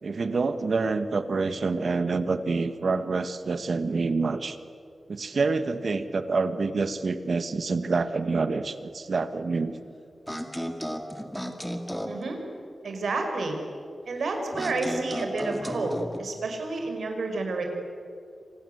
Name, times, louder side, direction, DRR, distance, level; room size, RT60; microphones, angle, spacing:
voice 1, 0.0-4.6 5.1-9.8, right 4 dB, 55° right, 11 dB, 1.4 m, -27 dB
sound 1, 10.3-12.2 14.5-16.2, equal, ahead, 2.1 m, -34 dB
voice 2, 12.1-12.4 12.8-13.6 14.1-15.9 16.2-17.6, right 3 dB, 85° right, 4 dB, 5.4 m, -30 dB
29.0 x 25.5 x 7.9 m, 2.4 s
wide cardioid pair, 160°, 0 cm